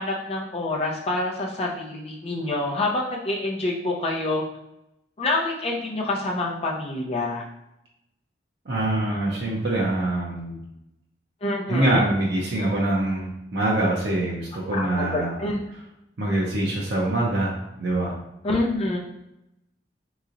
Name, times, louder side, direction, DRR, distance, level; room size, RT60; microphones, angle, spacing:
voice 1, 0.0-4.4 5.2-7.4 11.4-12.1 14.7-15.6 18.4-19.0, left 2 dB, 35° left, -3 dB, 0.6 m, -27 dB
voice 2, 8.7-10.6 11.7-15.3 16.2-17.5 17.8-18.1, right 1 dB, 70° right, -4 dB, 0.6 m, -24 dB
3.8 x 3.0 x 2.5 m, 0.86 s
head